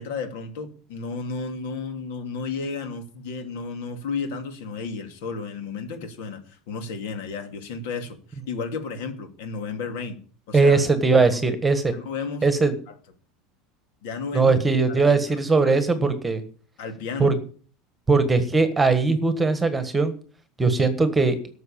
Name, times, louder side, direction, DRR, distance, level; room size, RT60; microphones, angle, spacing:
voice 1, 0.0-10.2 10.5-10.8 11.2-11.4 11.9-12.5 14.0-14.6 14.9-15.2 15.5-16.2 16.8-17.3, left 4 dB, 70° left, 7 dB, 2.7 m, -33 dB
voice 2, 10.5-11.9 12.4-12.7 14.3-16.4 17.2-17.4 18.1-20.1 20.6-21.4, right 4 dB, 10° right, 10 dB, 1.4 m, -20 dB
12.5 x 6.7 x 8.7 m, 0.43 s
supercardioid pair, 155°, 0 cm